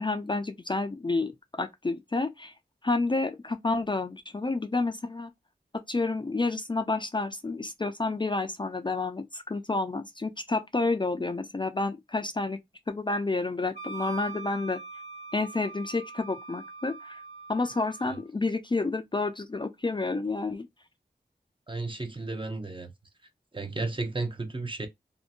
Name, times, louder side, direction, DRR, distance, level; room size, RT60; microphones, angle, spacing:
voice 1, 0.0-1.3 1.6-2.5 2.8-5.3 5.9-12.6 12.9-14.8 15.3-17.2 17.5-20.7, left 3 dB, 25° left, 0.4 m, -29 dB
Wind instrument woodwind instrument, 13.7-18.2, right 5 dB, 85° left, 0.7 m, -43 dB
voice 2, 21.7-22.9 23.5-24.9, right 3 dB, 30° right, 0.6 m, -33 dB
2.7 x 2.1 x 2.5 m
wide cardioid pair, 50°, 17 cm